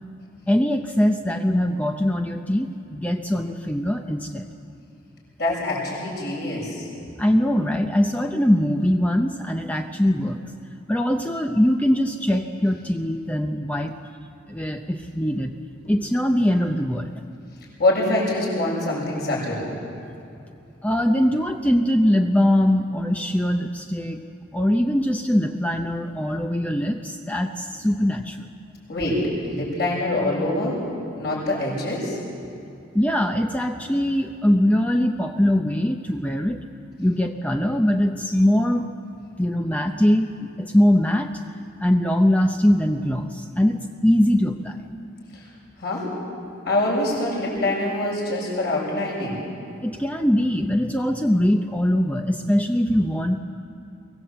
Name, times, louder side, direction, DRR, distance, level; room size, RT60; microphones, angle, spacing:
voice 1, 0.5-4.5 7.2-10.4 10.9-13.9 14.5-15.5 15.9-17.1 20.8-24.2 24.5-28.5 32.9-36.6 37.0-38.9 39.4-41.3 41.8-44.8 49.8-53.4, equal, 10° left, 4 dB, 0.7 m, -22 dB
voice 2, 5.4-6.9 17.8-19.7 28.9-30.8 31.1-32.2 45.3-45.5 45.8-46.1 46.6-49.4, left 1 dB, 55° left, -4 dB, 7.1 m, -24 dB
23.5 x 18.0 x 8.0 m, 2.7 s
head